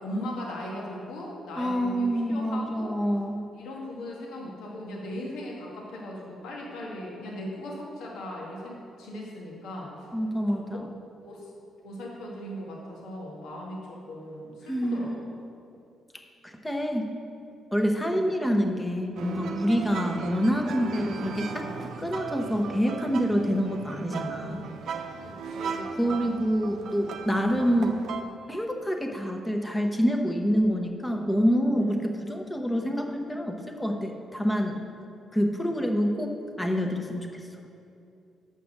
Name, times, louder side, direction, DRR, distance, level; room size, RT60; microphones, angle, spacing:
voice 1, 0.0-2.9 3.5-10.1 10.5-10.8 11.2-11.5 11.8-15.1 18.1-18.2 25.2-26.4 27.5-27.6 31.8-31.9 35.6-35.7, left 1 dB, 85° left, -3 dB, 1.5 m, -38 dB
voice 2, 1.6-3.4 10.1-10.9 14.7-15.2 16.4-17.1 17.7-21.7 22.0-24.6 26.0-28.0 28.5-34.8 35.3-37.4, equal, 10° left, 3 dB, 0.9 m, -27 dB
sound 1, 19.2-28.2, right 5 dB, 70° right, 0.6 m, -37 dB
7.1 x 5.8 x 6.5 m, 2.6 s
cardioid pair, 90°, 0 cm